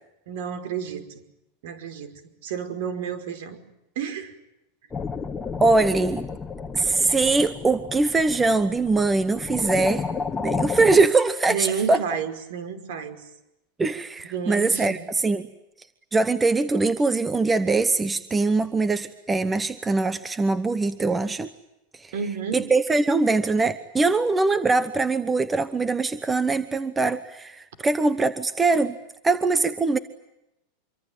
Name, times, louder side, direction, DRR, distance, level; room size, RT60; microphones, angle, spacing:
voice 1, 0.3-1.2 1.6-2.1 2.4-3.6 4.0-4.4 11.5-13.2 14.2-15.1 22.1-22.6, right 7 dB, 60° right, 9 dB, 5.3 m, -31 dB
sound 1, 4.9-11.1, left 5 dB, 10° left, 1.6 m, -32 dB
voice 2, 5.6-6.3 6.7-10.0 10.4-12.0 13.8-15.4 16.1-21.5 22.0-22.1 22.5-29.0 29.2-30.0, right 3 dB, 10° right, 12 dB, 1.0 m, -22 dB
26.5 x 24.5 x 9.2 m, 0.88 s
supercardioid pair, 165°, 0 cm